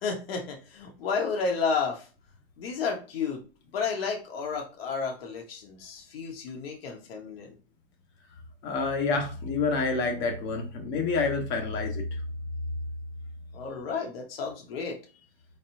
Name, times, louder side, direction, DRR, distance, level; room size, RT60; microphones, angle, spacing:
voice 1, 0.0-2.1 2.6-3.4 3.7-7.5 13.5-15.0, left 5 dB, 65° left, 1 dB, 1.5 m, -31 dB
voice 2, 8.6-12.2, left 4 dB, 35° left, 4 dB, 1.2 m, -28 dB
4.2 x 4.1 x 2.6 m, 0.34 s
hypercardioid pair, 140°, 32 cm